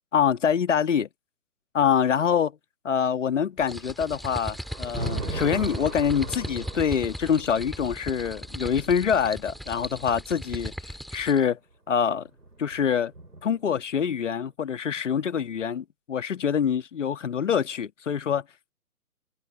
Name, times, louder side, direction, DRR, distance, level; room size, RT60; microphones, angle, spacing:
voice 1, 0.1-1.1 1.7-2.5 2.9-10.7 11.1-11.6 11.9-12.3 12.6-13.1 13.4-18.4, left 7 dB, 55° left, 2.0 m, -25 dB
sound 1, 3.6-11.4, equal, ahead, 2.3 m, -37 dB
Thunder, 3.7-10.9 12.0-13.7, right 2 dB, 85° right, 4.5 m, -39 dB
figure-of-eight pair, 135°, 44 cm